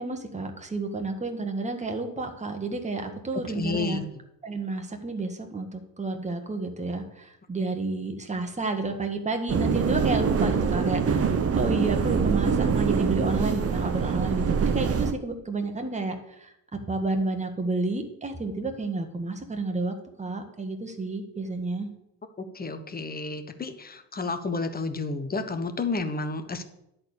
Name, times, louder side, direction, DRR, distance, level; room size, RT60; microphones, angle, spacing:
voice 1, 0.0-4.0 4.4-16.5 16.9-21.9, right 3 dB, 15° right, 4 dB, 1.7 m, -31 dB
voice 2, 3.5-4.0 22.4-26.6, left 3 dB, 20° left, 9 dB, 1.2 m, -31 dB
sound 1, 9.5-15.1, right 6 dB, 30° right, 1.0 m, -24 dB
10.5 x 4.4 x 7.1 m, 0.82 s
supercardioid pair, 80°, 46 cm